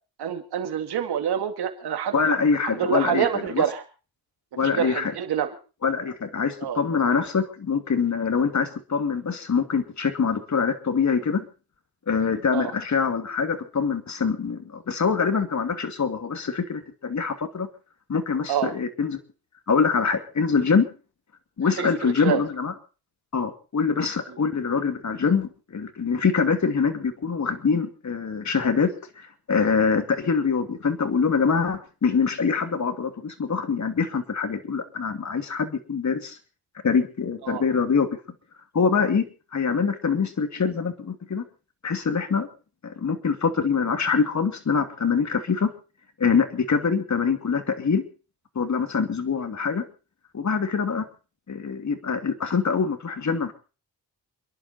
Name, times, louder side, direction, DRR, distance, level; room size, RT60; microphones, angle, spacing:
voice 1, 0.2-2.1 2.6-3.8 4.6-5.5 6.6-6.8 12.5-12.7 18.5-18.7 21.8-22.4 37.4-37.6, right 8 dB, 90° right, 6 dB, 2.4 m, -27 dB
voice 2, 2.1-3.6 4.6-5.1 5.8-11.4 12.1-17.7 18.1-19.2 19.7-20.9 21.6-22.7 23.3-36.4 36.8-38.1 38.7-41.4 41.8-42.5 42.8-45.7 46.2-48.0 48.5-49.8 50.3-51.0 51.5-53.5, left 5 dB, 45° left, 7 dB, 2.7 m, -24 dB
28.5 x 11.0 x 4.4 m, 0.36 s
cardioid pair, 85°, 38 cm